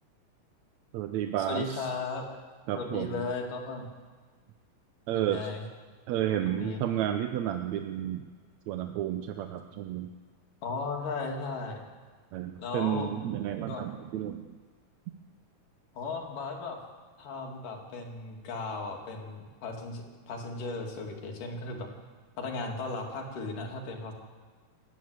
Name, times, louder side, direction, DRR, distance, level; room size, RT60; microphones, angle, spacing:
voice 1, 0.9-1.9 2.7-3.2 5.1-5.5 6.1-8.3 8.7-10.1 12.3-14.6, right 11 dB, 70° right, 7 dB, 1.9 m, -31 dB
voice 2, 1.5-2.3 2.7-3.9 5.1-5.6 6.5-6.8 10.6-11.8 12.6-13.1 13.6-13.8 16.0-16.8 17.2-21.9 22.4-24.1, left 3 dB, 85° left, 2 dB, 4.1 m, -36 dB
28.5 x 11.5 x 8.1 m, 1.5 s
omnidirectional pair, 3.6 m